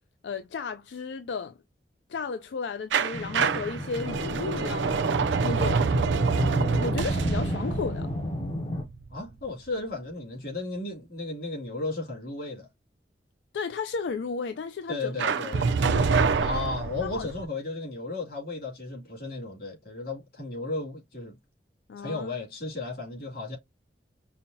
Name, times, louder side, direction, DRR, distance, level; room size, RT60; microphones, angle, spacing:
voice 1, 0.2-1.6 2.1-5.1 5.4-5.9 6.8-8.1 13.5-15.1 15.5-16.4 17.0-17.3 21.9-22.4, left 5 dB, 80° left, 0.4 m, -34 dB
sound 1, 2.9-9.7 15.2-17.4, right 5 dB, 85° right, 0.5 m, -27 dB
sound 2, 3.1-8.8, left 1 dB, 30° left, 0.6 m, -33 dB
voice 2, 9.1-12.7 14.9-15.6 16.4-21.4 22.0-23.6, left 3 dB, 55° left, 2.7 m, -34 dB
5.5 x 2.2 x 2.7 m
head